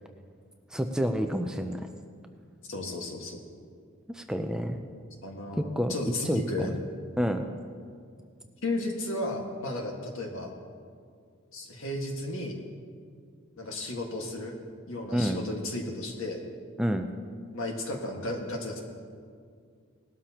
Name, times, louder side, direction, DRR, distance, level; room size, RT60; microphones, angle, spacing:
voice 1, 0.7-1.9 4.1-4.8 5.5-6.0 6.2-6.7 7.2-7.5 15.1-15.4 16.8-17.1, equal, 5° right, 5 dB, 0.5 m, -29 dB
voice 2, 2.7-3.4 5.2-6.8 8.6-10.5 11.5-12.6 13.6-14.6 14.9-16.4 17.5-18.8, left 2 dB, 65° left, 1 dB, 1.8 m, -34 dB
19.0 x 12.5 x 2.9 m, 2.1 s
head